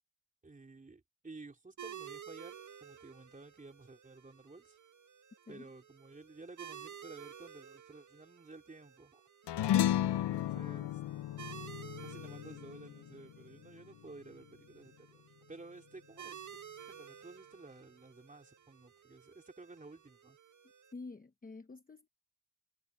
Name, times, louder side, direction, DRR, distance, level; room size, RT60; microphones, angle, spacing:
voice 1, 0.4-4.8 5.5-9.2 10.1-11.0 12.0-15.2 15.5-16.6 16.9-20.4, right 3 dB, 15° right, 4.0 m, -53 dB
sound 1, 1.8-20.9, right 8 dB, 40° right, 1.8 m, -53 dB
sound 2, 9.5-14.2, left 12 dB, 60° left, 0.8 m, -34 dB
voice 2, 20.9-22.1, left 3 dB, 20° left, 1.0 m, -48 dB
cardioid pair, 160°, 48 cm